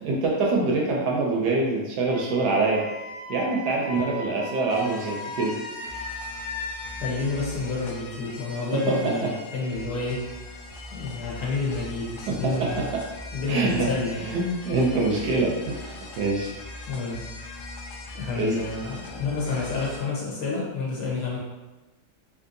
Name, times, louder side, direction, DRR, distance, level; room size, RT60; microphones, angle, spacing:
voice 1, 0.0-2.8 3.3-5.5 8.9-9.1 12.3-13.0 13.5-13.9 14.3-16.5 18.4-18.5, right 3 dB, 75° right, -1 dB, 1.0 m, -25 dB
Wind instrument woodwind instrument, 2.1-7.1, left 2 dB, 40° left, 0.7 m, -37 dB
sound 1, 4.7-20.0, left 2 dB, 85° left, 0.6 m, -41 dB
voice 2, 6.9-10.2 10.9-12.9 13.3-14.3 16.9-17.3 18.1-21.4, left 3 dB, 70° left, -4 dB, 1.4 m, -29 dB
3.5 x 2.7 x 2.5 m, 1.1 s
omnidirectional pair, 1.9 m